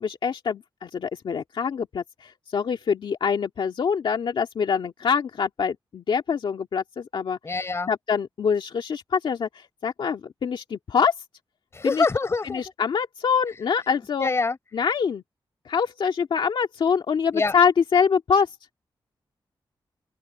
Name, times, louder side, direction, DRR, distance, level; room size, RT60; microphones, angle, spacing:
voice 1, 0.0-7.4 7.9-11.1 11.8-12.0 12.4-14.3 14.7-15.2 15.7-18.5, left 6 dB, 70° left, 1.9 m, -25 dB
voice 2, 7.4-7.9 11.7-12.7 14.2-14.6 17.3-17.5, left 3 dB, 30° left, 4.3 m, -25 dB
open air
wide cardioid pair, 165°, 9 cm